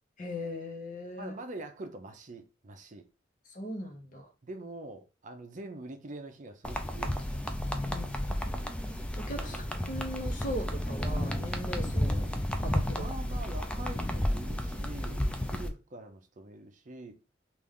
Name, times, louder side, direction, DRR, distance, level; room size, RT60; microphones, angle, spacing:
voice 1, 0.2-1.3 3.5-4.3 7.8-8.1 8.4-8.7 9.2-9.6 9.9-12.3 12.6-13.0, equal, 45° left, 0.9 m, -39 dB
voice 2, 1.2-3.0 4.4-7.5 9.4-9.7 13.0-17.1, right 2 dB, 45° right, 0.6 m, -45 dB
sound 1, 6.6-15.7, left 1 dB, 5° left, 0.4 m, -32 dB
3.3 x 2.5 x 3.6 m
head